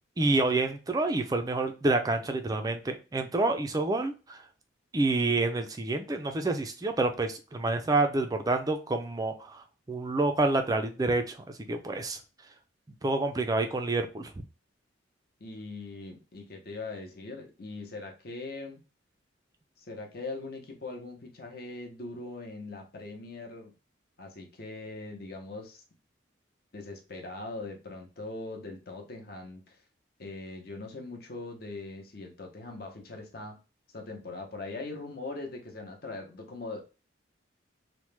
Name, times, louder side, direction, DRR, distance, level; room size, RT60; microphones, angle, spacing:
voice 1, 0.2-4.4 4.9-11.4 11.7-12.2 13.0-14.3, right 2 dB, 20° right, 6 dB, 0.3 m, -28 dB
voice 2, 15.4-18.8 19.8-23.7 24.2-25.8 26.7-29.8 30.2-33.6 33.9-36.8, left 3 dB, 50° left, 2 dB, 0.8 m, -41 dB
3.0 x 2.1 x 3.2 m, 0.32 s
head